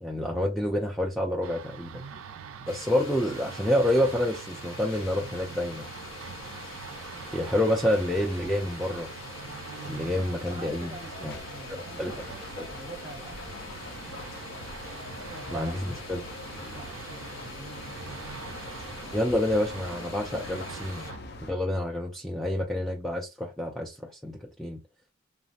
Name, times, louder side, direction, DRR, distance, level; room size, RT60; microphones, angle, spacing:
voice 1, 0.0-2.0 2.7-5.8 7.3-9.1 9.8-11.0 11.2-11.3 12.0-12.1 12.6-12.7 15.5-15.7 16.1-16.2 19.1-21.1 21.5-24.8, left 1 dB, ahead, 0.3 m, -28 dB
sound 1, 1.4-21.2, right 6 dB, 90° right, 0.4 m, -44 dB
sound 2, 2.7-21.1, left 2 dB, 85° left, 1.2 m, -45 dB
sound 3, 4.7-21.5, left 2 dB, 55° left, 0.5 m, -44 dB
voice 2, 10.5-13.8 14.9-15.7 16.5-18.4 18.9-19.3, right 2 dB, 25° right, 0.8 m, -46 dB
3.2 x 2.0 x 2.6 m
head